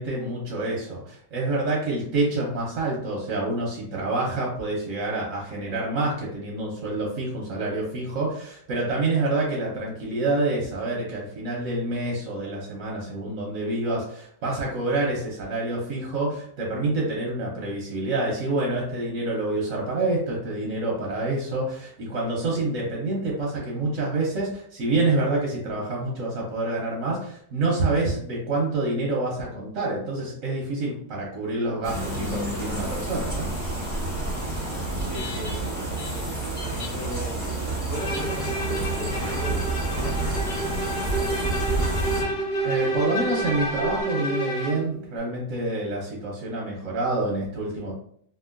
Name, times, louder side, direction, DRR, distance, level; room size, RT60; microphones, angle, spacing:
voice 1, 0.0-33.5 42.0-42.4 42.6-47.9, right 2 dB, 60° right, -3 dB, 0.9 m, -27 dB
sound 1, 31.8-42.2, right 2 dB, 10° right, 0.8 m, -29 dB
voice 2, 35.0-36.2 36.9-37.5 37.8-41.8, equal, 60° left, -3 dB, 0.9 m, -39 dB
Bowed string instrument, 37.9-44.9, right 1 dB, 80° left, 1.3 m, -29 dB
sound 2, 38.5-44.0, right 2 dB, 80° right, 0.5 m, -44 dB
2.9 x 2.6 x 2.4 m, 0.64 s
omnidirectional pair, 1.9 m